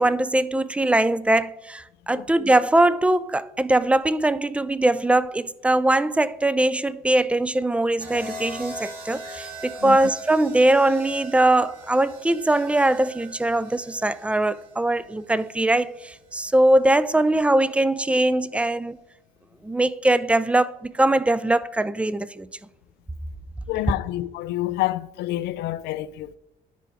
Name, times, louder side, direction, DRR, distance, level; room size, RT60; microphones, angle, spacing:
voice 1, 0.0-19.0 19.6-22.5, right 1 dB, 5° right, 0.4 m, -21 dB
sound 1, 8.0-16.1 17.3-17.7, right 1 dB, 55° right, 2.8 m, -41 dB
voice 2, 23.7-26.4, left 15 dB, 80° left, 0.4 m, -28 dB
10.5 x 5.0 x 4.7 m
cardioid pair, 110°, 17 cm